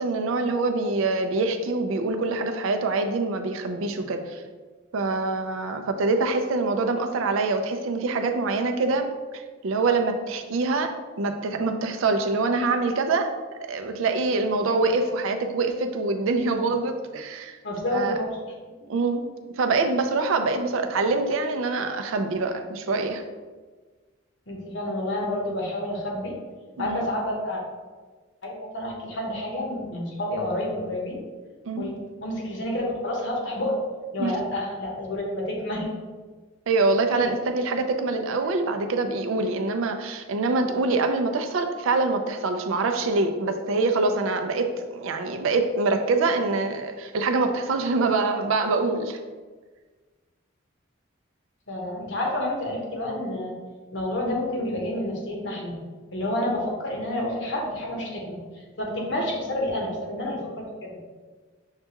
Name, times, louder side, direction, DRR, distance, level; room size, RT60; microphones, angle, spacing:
voice 1, 0.0-4.4 4.9-9.1 9.6-13.3 13.7-17.6 17.9-18.1 18.9-19.3 19.6-23.2 26.8-27.1 31.7-31.9 34.2-34.4 36.7-49.2 59.0-59.1, right 3 dB, 80° right, 6 dB, 0.4 m, -25 dB
voice 2, 17.6-18.3 24.5-26.3 26.8-27.6 28.4-31.2 31.8-33.8 34.1-35.9 37.1-37.3 51.7-53.5 53.9-55.7 56.1-61.0, left 1 dB, 60° left, -2 dB, 0.9 m, -29 dB
6.5 x 2.3 x 2.8 m, 1.4 s
head